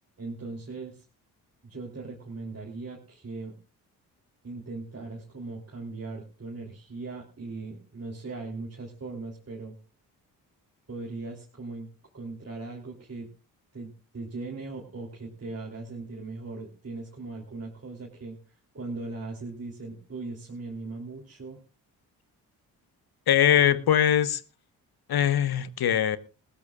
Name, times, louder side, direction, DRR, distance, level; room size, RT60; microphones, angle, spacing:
voice 1, 0.2-1.0 1.6-3.5 4.4-9.7 10.9-11.9 12.1-13.3 13.7-18.4 18.7-21.6, right 3 dB, 35° right, 3.5 m, -39 dB
voice 2, 23.3-24.4 25.1-26.2, left 10 dB, 55° left, 1.1 m, -22 dB
19.5 x 16.0 x 2.4 m
hypercardioid pair, 45°, 44 cm